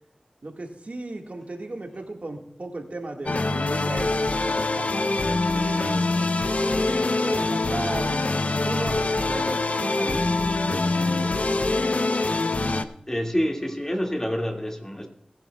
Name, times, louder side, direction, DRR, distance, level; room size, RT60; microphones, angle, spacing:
voice 1, 0.4-6.1 6.5-11.4, right 2 dB, 70° right, 2 dB, 1.8 m, -36 dB
sound 1, 3.3-12.9, left 2 dB, 65° left, 0.7 m, -24 dB
voice 2, 13.1-15.1, equal, 20° left, 2 dB, 2.1 m, -27 dB
19.0 x 11.0 x 2.3 m, 0.71 s
wide cardioid pair, 50°, 3 cm